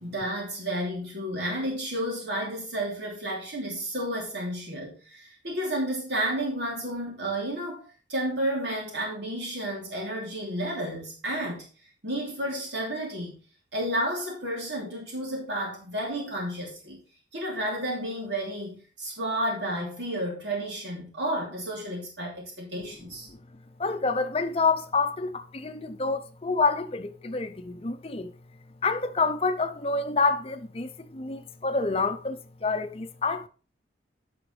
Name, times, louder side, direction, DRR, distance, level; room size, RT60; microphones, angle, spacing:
voice 1, 0.0-11.7 12.0-13.3 13.7-17.0 17.3-23.3, right 1 dB, 80° right, 3.0 m, -31 dB
voice 2, 23.8-28.3 28.8-33.5, left 4 dB, 35° left, 0.6 m, -28 dB
9.8 x 5.8 x 3.3 m
head